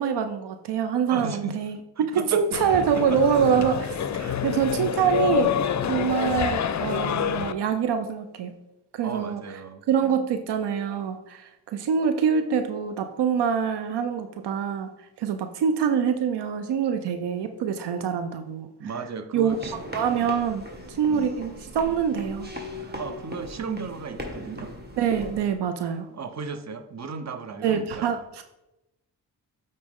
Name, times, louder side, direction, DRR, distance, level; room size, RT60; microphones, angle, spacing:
voice 1, 0.0-5.5 5.9-8.5 8.9-9.4 9.9-14.9 15.2-18.7 19.3-19.6 19.9-22.5 22.9-23.0 25.0-26.1 27.6-28.4, right 7 dB, 75° right, 8 dB, 0.6 m, -25 dB
voice 2, 1.1-1.7 2.0-2.5 2.9-3.2 4.1-4.4 9.0-9.8 18.8-19.7 21.0-21.3 22.9-24.7 26.1-28.2, right 5 dB, 40° right, 9 dB, 0.9 m, -35 dB
sound 1, 2.5-7.5, left 9 dB, 45° left, 0.5 m, -27 dB
sound 2, 19.5-25.4, left 1 dB, 25° right, 1.8 m, -39 dB
8.5 x 4.1 x 3.7 m, 0.94 s
supercardioid pair, 40°, 41 cm